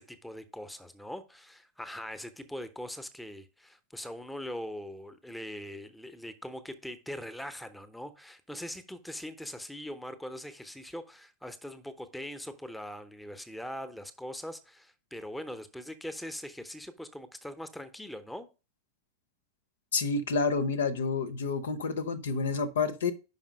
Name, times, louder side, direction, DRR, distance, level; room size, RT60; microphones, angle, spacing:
voice 1, 0.0-18.5, equal, 5° left, 0.8 m, -41 dB
voice 2, 19.9-23.1, left 4 dB, 60° left, 0.8 m, -29 dB
5.7 x 5.4 x 5.2 m
figure-of-eight pair, 90°, 0 cm